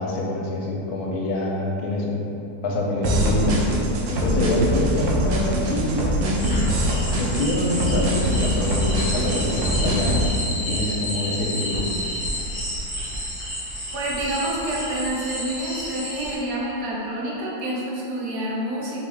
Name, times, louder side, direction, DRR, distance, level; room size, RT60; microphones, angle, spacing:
voice 1, 0.0-2.2 2.6-3.6 4.1-6.7 7.1-11.8, left 1 dB, 80° left, -2 dB, 1.1 m, -25 dB
sound 1, 3.0-10.3, equal, 70° right, 0.8 m, -23 dB
sound 2, 6.4-16.3, equal, 10° left, 0.6 m, -31 dB
voice 2, 13.9-19.1, right 1 dB, 85° right, -5 dB, 1.3 m, -28 dB
3.4 x 2.6 x 3.3 m, 2.8 s
omnidirectional pair, 1.7 m